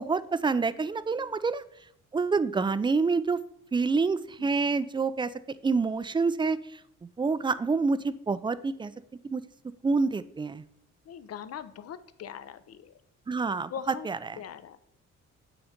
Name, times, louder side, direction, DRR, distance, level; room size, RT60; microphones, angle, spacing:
voice 1, 0.0-1.6 2.1-3.4 3.7-5.3 5.6-6.8 7.2-8.9 9.2-9.4 9.8-10.6 13.3-13.7 14.1-14.4, right 4 dB, 15° right, 15 dB, 0.4 m, -27 dB
voice 2, 11.1-12.9 13.7-14.1 14.4-14.8, left 8 dB, 55° left, 13 dB, 0.7 m, -41 dB
8.8 x 4.0 x 5.0 m, 0.70 s
cardioid pair, 90°, 30 cm